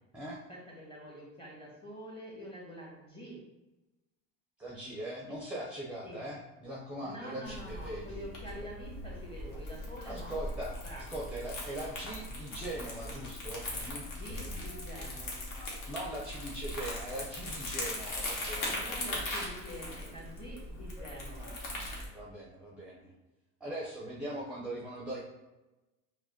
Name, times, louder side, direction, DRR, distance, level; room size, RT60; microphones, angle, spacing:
voice 1, 0.5-3.4 6.0-6.2 7.0-10.3 10.8-11.4 14.0-15.4 18.7-21.6, equal, 15° left, -4 dB, 1.3 m, -46 dB
voice 2, 4.6-8.3 10.1-14.1 15.9-19.4 22.1-23.1 23.6-25.2, right 1 dB, 5° right, -5 dB, 0.6 m, -41 dB
Crumpling crinkling, 7.4-22.1, left 1 dB, 60° left, 1.2 m, -40 dB
4.7 x 2.1 x 2.8 m, 1.0 s
supercardioid pair, 110°, 37 cm